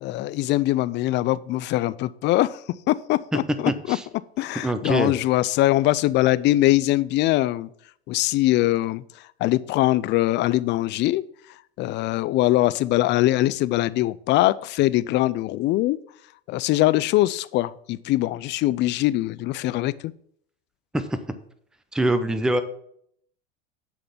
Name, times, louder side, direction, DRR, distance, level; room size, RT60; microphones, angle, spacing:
voice 1, 0.0-2.6 2.9-4.0 4.4-7.7 8.1-9.0 9.4-11.2 11.8-16.0 16.5-20.1, left 16 dB, 35° left, 17 dB, 0.4 m, -22 dB
voice 2, 3.7-4.0 4.6-5.1 20.9-21.2 21.9-22.6, right 1 dB, ahead, 11 dB, 0.7 m, -24 dB
9.9 x 3.9 x 6.9 m, 0.67 s
hypercardioid pair, 100°, 30 cm